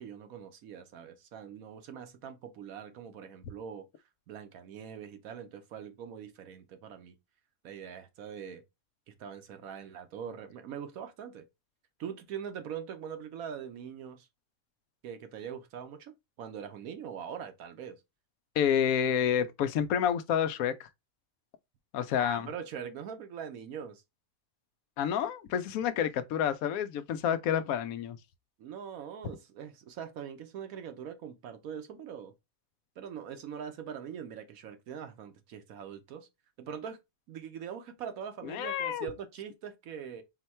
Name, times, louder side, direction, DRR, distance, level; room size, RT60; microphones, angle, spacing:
voice 1, 0.0-3.9 4.3-7.1 7.6-8.6 9.1-11.4 12.0-14.3 15.0-18.0 22.2-24.0 28.6-32.3 33.0-36.3 36.6-37.0 37.3-40.2, right 8 dB, 85° right, 1.2 m, -42 dB
voice 2, 18.6-20.9 21.9-22.5 25.0-28.2 38.4-39.1, left 9 dB, 85° left, 1.0 m, -29 dB
4.5 x 2.2 x 4.2 m
omnidirectional pair, 1.4 m